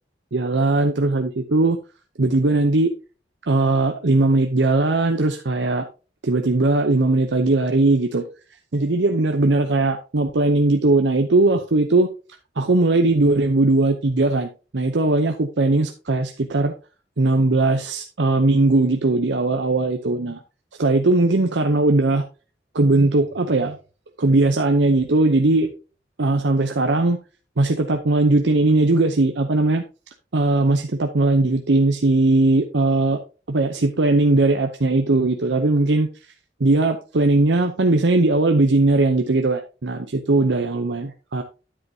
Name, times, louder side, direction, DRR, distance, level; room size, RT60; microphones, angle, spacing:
voice 1, 0.3-1.8 2.2-2.9 3.5-5.9 6.2-8.2 8.7-12.1 12.6-16.7 17.2-20.4 20.8-22.3 22.7-23.8 24.2-25.7 26.2-27.2 27.6-29.8 30.3-33.2 33.5-36.1 36.6-41.4, right 2 dB, 90° right, 6 dB, 0.8 m, -19 dB
10.0 x 8.0 x 2.8 m, 0.33 s
head